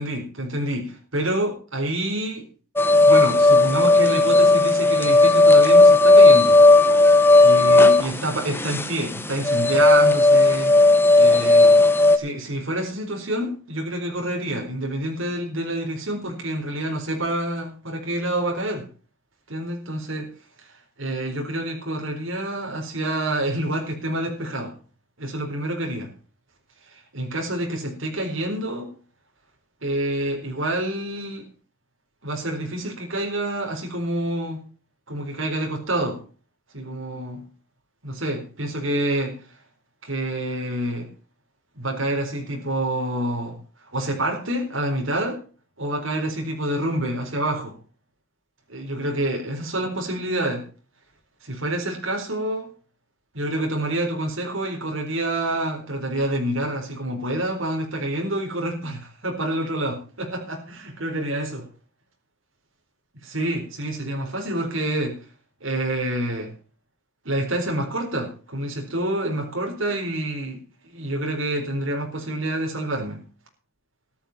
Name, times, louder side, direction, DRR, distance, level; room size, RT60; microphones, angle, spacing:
voice 1, 0.0-2.4 3.0-6.6 7.4-10.7 11.1-11.8 12.1-18.9 19.5-20.3 20.6-20.7 21.0-24.7 25.2-26.1 26.9-28.9 29.8-31.5 32.2-34.6 35.1-36.2 36.7-37.4 38.0-39.4 40.0-41.1 41.8-45.4 45.8-47.7 48.7-50.6 51.4-52.7 53.3-61.6 63.2-65.2 65.6-66.5 67.2-73.2, right 1 dB, 75° right, 2 dB, 4.3 m, -27 dB
sound 1, 2.8-12.2, left 2 dB, 10° left, 1.2 m, -14 dB
14.0 x 12.0 x 4.4 m, 0.37 s
head